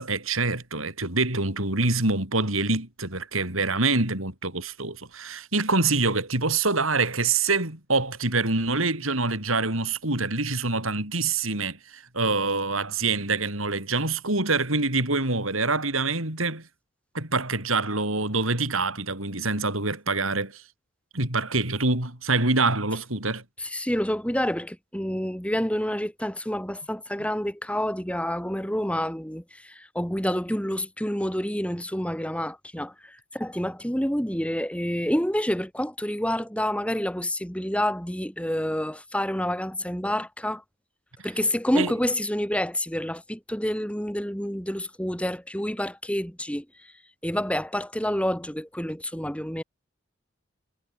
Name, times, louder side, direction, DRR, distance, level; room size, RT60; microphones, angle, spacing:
voice 1, 0.0-16.6 17.1-20.6 21.1-23.4 41.7-41.9, right 3 dB, 85° right, 7.1 m, -25 dB
voice 2, 23.6-40.6 41.2-46.6 47.2-49.6, equal, 5° left, 6.4 m, -28 dB
head